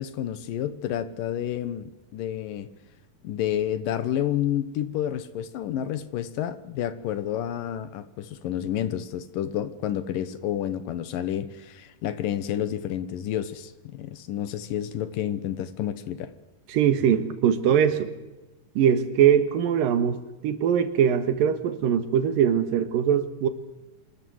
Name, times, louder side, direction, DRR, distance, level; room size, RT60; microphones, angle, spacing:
voice 1, 0.0-2.7 3.2-16.3, left 10 dB, 70° left, 14 dB, 2.8 m, -30 dB
voice 2, 16.7-18.1 18.8-23.5, right 8 dB, 75° right, 11 dB, 3.2 m, -22 dB
26.0 x 13.5 x 9.4 m, 1.1 s
omnidirectional pair, 4.2 m